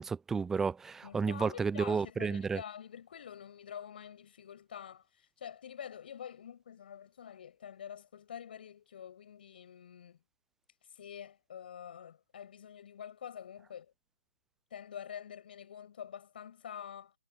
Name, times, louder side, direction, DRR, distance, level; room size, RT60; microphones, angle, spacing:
voice 1, 0.0-2.6, right 5 dB, 5° right, 0.4 m, -32 dB
voice 2, 1.0-10.2 10.9-13.9 14.7-17.1, left 8 dB, 45° left, 6.9 m, -47 dB
figure-of-eight pair, 135°, 7 cm